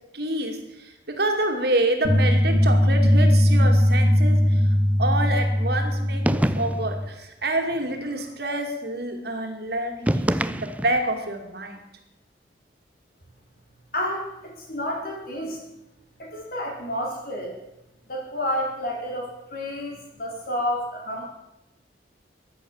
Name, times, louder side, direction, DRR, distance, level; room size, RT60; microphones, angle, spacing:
voice 1, 0.1-4.6 5.0-11.8, right 1 dB, 60° right, 4 dB, 2.6 m, -27 dB
sound 1, 2.0-7.0, equal, 40° right, 2.3 m, -19 dB
sound 2, 6.2-7.0 10.0-11.1, right 1 dB, 10° right, 0.4 m, -25 dB
voice 2, 13.9-15.6 16.2-17.6 18.1-21.2, left 1 dB, 55° left, -1 dB, 4.0 m, -30 dB
14.0 x 11.0 x 7.3 m, 0.93 s
head